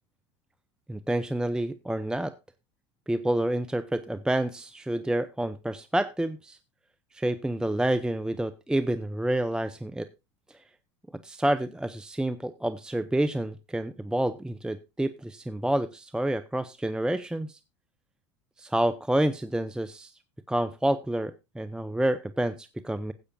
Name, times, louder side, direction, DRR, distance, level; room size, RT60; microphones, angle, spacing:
voice 1, 0.9-2.3 3.1-6.6 7.1-10.1 11.2-17.6 18.6-20.1 20.5-23.1, right 1 dB, 5° right, 12 dB, 0.6 m, -28 dB
15.5 x 8.2 x 2.6 m, 0.25 s
hypercardioid pair, 80°, 15 cm